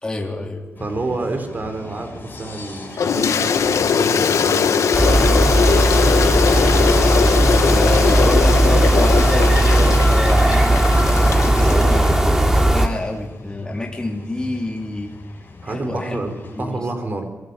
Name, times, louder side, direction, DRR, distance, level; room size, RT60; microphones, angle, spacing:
voice 1, 0.0-0.7 7.6-15.1 15.6-16.2 16.5-16.9, left 2 dB, 15° left, 0 dB, 3.7 m, -28 dB
sound 1, 0.7-16.6, left 3 dB, 35° left, 7.5 m, -38 dB
voice 2, 0.8-5.0 15.6-17.3, right 3 dB, 35° right, 6 dB, 4.5 m, -29 dB
Toilet flush, 3.0-12.3, left 6 dB, 80° left, 1.5 m, -20 dB
sound 2, 4.9-12.9, right 1 dB, 10° right, 2.8 m, -16 dB
24.5 x 23.0 x 10.0 m, 1.0 s
wide cardioid pair, 175°, 5 cm